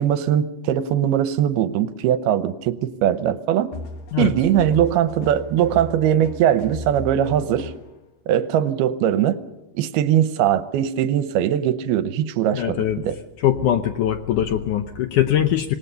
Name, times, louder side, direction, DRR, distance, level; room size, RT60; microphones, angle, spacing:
voice 1, 0.0-3.7 4.2-7.7 8.3-9.4 9.7-13.2, right 10 dB, 80° right, 12 dB, 2.8 m, -20 dB
sound 1, 3.7-7.9, left 3 dB, 50° left, 2.7 m, -36 dB
voice 2, 12.5-13.0 13.4-15.8, left 11 dB, 75° left, 8 dB, 1.9 m, -21 dB
26.5 x 19.5 x 6.9 m, 0.97 s
omnidirectional pair, 4.5 m